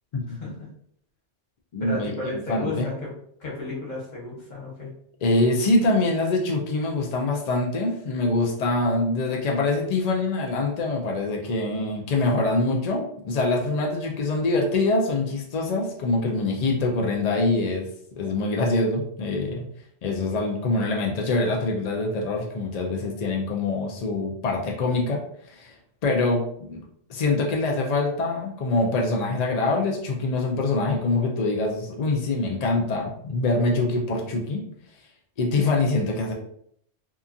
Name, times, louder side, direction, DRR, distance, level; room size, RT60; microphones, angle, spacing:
voice 1, 0.3-0.7 1.8-3.1 3.4-4.9, left 2 dB, 40° left, -5 dB, 1.1 m, -33 dB
voice 2, 1.7-2.9 5.2-17.9 18.2-19.6 20.0-25.2 25.5-25.7 26.0-26.8 27.1-34.6 35.4-36.3, left 2 dB, 65° left, -1 dB, 0.4 m, -24 dB
2.8 x 2.4 x 2.5 m, 0.67 s
omnidirectional pair, 1.2 m